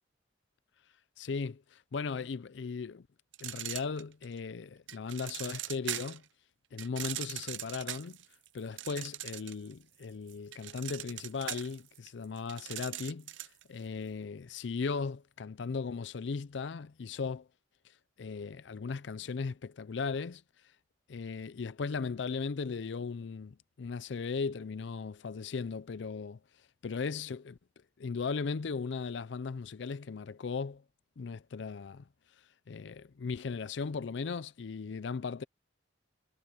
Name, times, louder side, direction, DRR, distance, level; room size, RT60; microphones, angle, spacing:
voice 1, 1.2-3.1 3.4-6.2 6.7-8.2 8.5-17.5 17.8-20.7 21.1-27.6 28.0-30.8 31.2-32.1 32.4-35.4, left 5 dB, 65° left, 0.5 m, -37 dB
sound 1, 3.3-4.4 4.9-6.2 6.8-9.7 10.0-13.6, right 13 dB, 75° right, 0.6 m, -40 dB
head